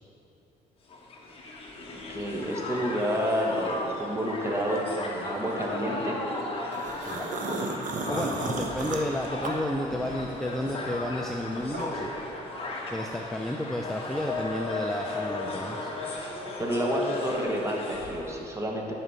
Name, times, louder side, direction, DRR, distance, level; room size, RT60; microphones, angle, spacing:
Crowd, 0.9-18.3, left 2 dB, 35° left, 1.4 m, -36 dB
voice 1, 2.1-6.2 16.6-18.9, equal, 15° right, -1 dB, 1.4 m, -29 dB
sound 1, 6.7-10.3 10.6-12.1, right 3 dB, 50° right, 1.0 m, -34 dB
voice 2, 8.1-12.1 12.9-15.9, left 1 dB, ahead, 2 dB, 0.5 m, -32 dB
11.0 x 5.0 x 5.7 m, 2.8 s
cardioid pair, 110°, 17 cm